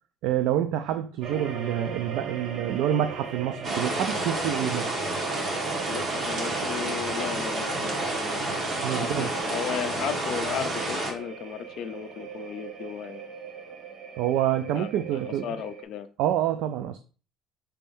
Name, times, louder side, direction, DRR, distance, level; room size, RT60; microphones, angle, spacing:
voice 1, 0.2-4.9 8.8-9.3 14.2-15.5 16.2-17.0, right 11 dB, 75° right, 0.3 m, -27 dB
sound 1, 1.2-15.8, right 6 dB, 55° right, 0.7 m, -39 dB
sound 2, 3.6-11.1, right 2 dB, 35° right, 1.2 m, -30 dB
voice 2, 5.9-8.1 9.0-13.2 14.8-16.1, left 9 dB, 55° left, 0.5 m, -35 dB
5.5 x 3.4 x 2.6 m
cardioid pair, 150°, 0 cm